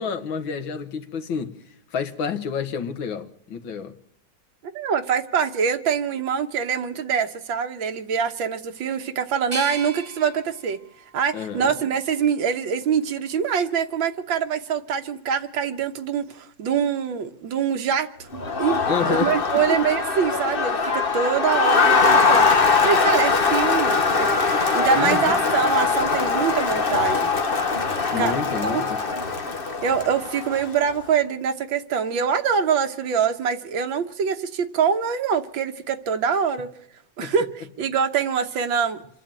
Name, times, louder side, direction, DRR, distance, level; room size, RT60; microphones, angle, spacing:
voice 1, 0.0-3.9 11.3-11.7 18.9-19.3 19.7-19.8 24.9-25.4 28.1-29.0 37.2-37.3, left 6 dB, 80° left, 2.1 m, -29 dB
voice 2, 4.8-10.8 11.1-18.1 18.6-27.3 28.2-28.3 28.6-28.8 29.8-36.7 37.2-39.0, right 7 dB, 80° right, 2.0 m, -24 dB
sound 1, 9.5-12.4 13.0-13.8, right 2 dB, 50° right, 6.5 m, -39 dB
Crowd, 18.3-30.9, left 4 dB, 30° left, 1.3 m, -21 dB
27.0 x 11.0 x 8.9 m
omnidirectional pair, 2.1 m